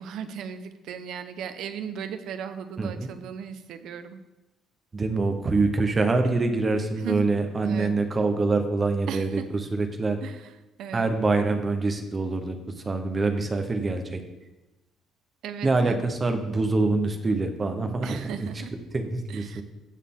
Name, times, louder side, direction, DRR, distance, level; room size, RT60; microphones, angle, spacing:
voice 1, 0.0-4.2 7.0-7.2 7.6-7.9 9.1-9.4 10.2-10.5 10.8-11.1 15.4-16.0 18.0-18.7 19.3-19.6, right 7 dB, 55° right, 9 dB, 0.8 m, -36 dB
voice 2, 2.8-3.1 4.9-10.2 10.9-12.6 12.8-14.2 15.6-18.5 18.9-19.6, right 3 dB, 20° right, 6 dB, 0.9 m, -25 dB
15.5 x 6.5 x 3.7 m, 1.0 s
cardioid pair, 175°, 0 cm